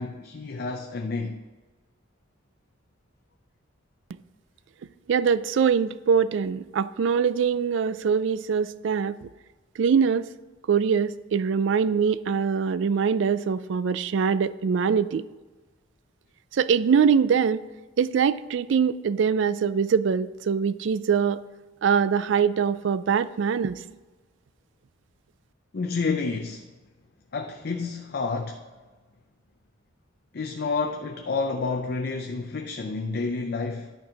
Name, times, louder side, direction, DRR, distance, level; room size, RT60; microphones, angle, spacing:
voice 1, 0.0-1.4 25.7-26.7 27.3-28.6 30.3-33.9, left 4 dB, 55° left, 0.5 m, -29 dB
voice 2, 5.1-9.3 9.8-10.2 10.7-15.2 16.5-17.6 18.0-21.4 21.8-23.8, right 6 dB, 65° right, 0.3 m, -23 dB
11.0 x 4.5 x 5.0 m
head